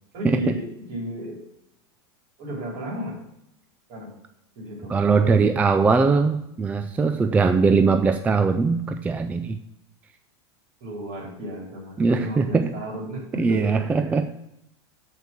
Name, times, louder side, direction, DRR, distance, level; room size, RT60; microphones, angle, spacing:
voice 1, 0.1-1.4 2.4-3.2 3.9-4.2 4.6-5.4 10.8-13.8, equal, 55° right, -1 dB, 4.0 m, -34 dB
voice 2, 4.9-9.6 12.0-12.7 13.4-14.3, right 4 dB, 10° right, 8 dB, 0.3 m, -21 dB
7.3 x 5.8 x 6.0 m, 0.79 s
supercardioid pair, 145°, 14 cm